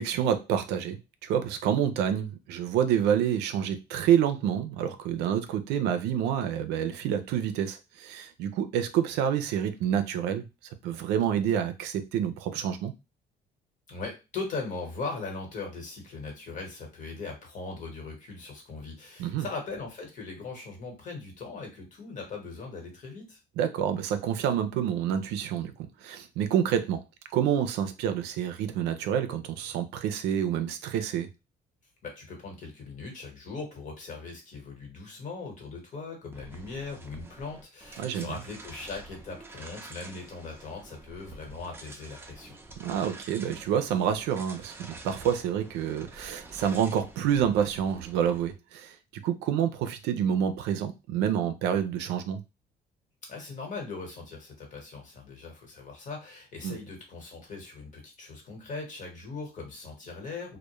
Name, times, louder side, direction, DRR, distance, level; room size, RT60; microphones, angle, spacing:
voice 1, 0.0-10.4 10.8-12.9 19.2-19.5 23.6-27.0 27.3-31.3 38.0-38.3 42.8-48.9 49.2-52.4 56.6-56.8, right 9 dB, 90° right, 0.4 m, -28 dB
voice 2, 13.9-23.4 32.0-42.5 53.2-60.6, left 4 dB, 50° left, 1.2 m, -39 dB
sound 1, 36.3-48.5, right 2 dB, 15° right, 0.4 m, -48 dB
2.2 x 2.1 x 3.0 m
cardioid pair, 110°, 17 cm